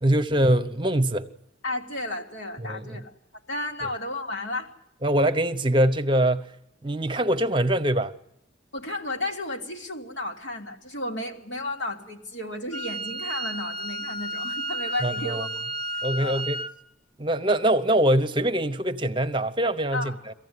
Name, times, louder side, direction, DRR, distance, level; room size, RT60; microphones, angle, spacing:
voice 1, 0.0-1.3 2.6-3.0 5.0-6.5 6.8-8.1 15.0-15.5 16.0-16.6 17.2-20.3, right 1 dB, 25° right, 0.9 m, -23 dB
voice 2, 1.6-3.1 3.5-4.7 8.7-15.6 16.2-16.4 19.9-20.1, left 1 dB, 75° left, 3.1 m, -33 dB
Wind instrument woodwind instrument, 12.7-16.7, right 1 dB, ahead, 0.9 m, -32 dB
23.5 x 15.5 x 9.6 m
head